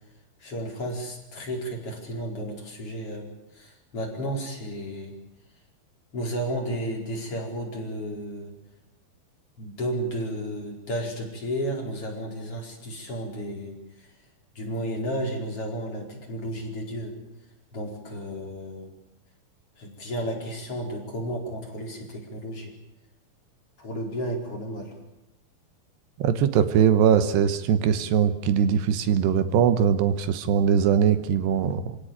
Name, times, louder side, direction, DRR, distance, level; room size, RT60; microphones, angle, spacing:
voice 1, 0.4-5.1 6.1-8.5 9.6-14.1 14.5-17.2 17.7-18.9 19.8-22.7 23.8-24.9, equal, 35° left, 0 dB, 5.3 m, -33 dB
voice 2, 26.2-32.0, right 8 dB, 80° right, 11 dB, 3.3 m, -21 dB
27.5 x 17.0 x 8.8 m, 0.92 s
omnidirectional pair, 4.9 m